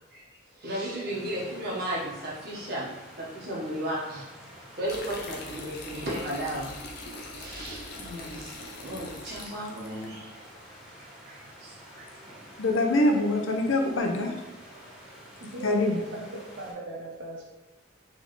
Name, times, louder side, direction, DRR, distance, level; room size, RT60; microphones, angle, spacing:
voice 1, 0.6-4.3 4.8-6.7 7.3-8.6 8.8-10.5 11.2-12.1, right 1 dB, 50° right, -6 dB, 1.4 m, -35 dB
sound 1, 1.1-16.7, equal, 5° right, 1.1 m, -49 dB
sound 2, 4.9-10.1, left 2 dB, 50° left, 0.6 m, -42 dB
voice 2, 12.6-14.3 15.6-16.0, left 1 dB, 90° left, 3 dB, 0.7 m, -24 dB
voice 3, 15.4-17.4, right 1 dB, 75° right, -2 dB, 0.8 m, -39 dB
4.2 x 3.6 x 3.2 m, 1.1 s
head